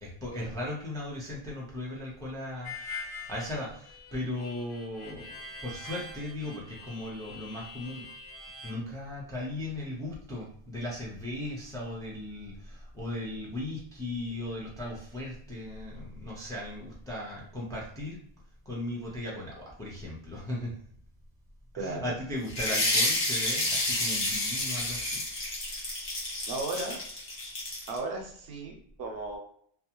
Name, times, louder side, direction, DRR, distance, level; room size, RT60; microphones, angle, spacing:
voice 1, 0.0-8.1 8.6-18.2 18.6-20.7 21.7-25.2, left 1 dB, 5° left, -4 dB, 0.5 m, -37 dB
Harmonica, 2.6-8.7, left 3 dB, 80° left, 0.9 m, -44 dB
voice 2, 21.8-22.1 26.5-27.0 27.9-29.4, right 3 dB, 75° right, 2 dB, 0.8 m, -35 dB
sound 1, 22.5-28.0, left 1 dB, 55° left, 1.0 m, -30 dB
2.4 x 2.3 x 2.8 m, 0.62 s
omnidirectional pair, 1.1 m